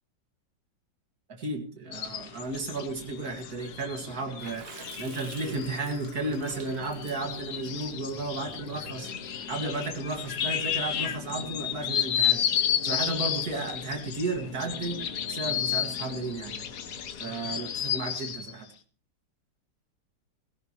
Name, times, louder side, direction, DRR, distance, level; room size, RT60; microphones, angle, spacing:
voice 1, 1.3-9.1 9.5-16.6 17.2-18.7, right 3 dB, 55° right, 4 dB, 2.7 m, -34 dB
sound 1, 1.9-18.5, left 9 dB, 65° left, 1.5 m, -32 dB
Water / Splash splatter, 4.4-8.9, right 8 dB, 85° right, 1.8 m, -49 dB
sound 2, 6.1-17.1, left 3 dB, 50° left, 3.8 m, -47 dB
17.5 x 16.5 x 3.1 m, 0.41 s
omnidirectional pair, 1.9 m